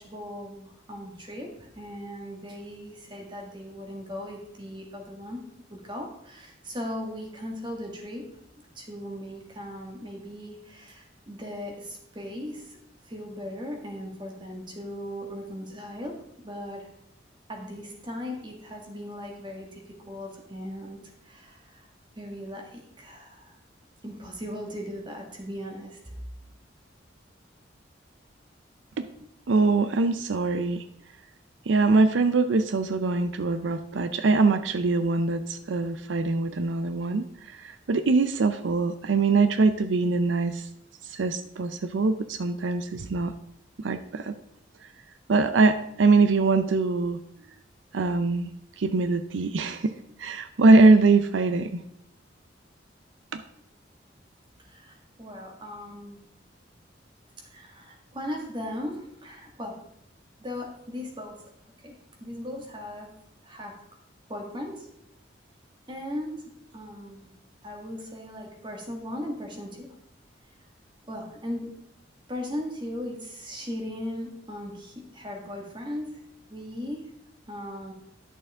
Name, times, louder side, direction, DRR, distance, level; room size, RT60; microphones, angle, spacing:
voice 1, 0.0-5.4 5.7-8.2 8.7-12.8 13.0-16.9 17.5-21.9 22.2-23.6 24.0-26.0 54.6-56.2 57.4-59.7 60.4-61.3 61.8-61.9 62.2-63.1 63.4-63.7 64.3-64.9 65.9-66.4 66.7-67.3 67.6-69.9 71.1-71.7 72.3-76.2 76.5-77.1 77.5-77.9, left 1 dB, 25° right, 1 dB, 1.8 m, -38 dB
voice 2, 29.5-30.8 31.7-40.7 41.0-43.3 43.8-44.3 45.3-47.2 47.9-51.8 53.3-53.4, right 3 dB, 80° right, 10 dB, 0.5 m, -23 dB
11.0 x 6.7 x 3.6 m, 0.77 s
head